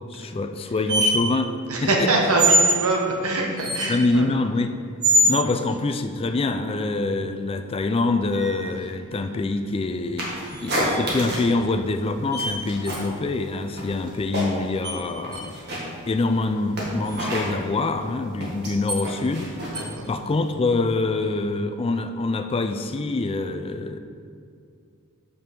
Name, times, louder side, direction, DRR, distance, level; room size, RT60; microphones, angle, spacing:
voice 1, 0.1-1.5 3.9-4.7 5.3-15.5 16.1-19.5 20.1-24.0, left 3 dB, 25° left, 8 dB, 0.3 m, -25 dB
sound 1, 0.9-1.1 2.4-2.8 3.6-3.9 5.0-5.4 8.3-8.8 10.5-11.2 12.3-12.5 12.8-12.9 14.8-15.0 15.3-15.4 17.1-17.2 18.9-19.0 19.7-19.8, right 1 dB, 20° right, 1.0 m, -22 dB
voice 2, 1.7-4.3 5.4-5.5 15.4-15.5 19.7-20.1, right 2 dB, 80° right, 0 dB, 1.3 m, -24 dB
sound 2, 10.2-11.6 11.9-13.2 13.4-14.8 15.1-20.5, equal, 50° right, 1.9 m, -30 dB
5.7 x 5.4 x 6.7 m, 2.3 s
head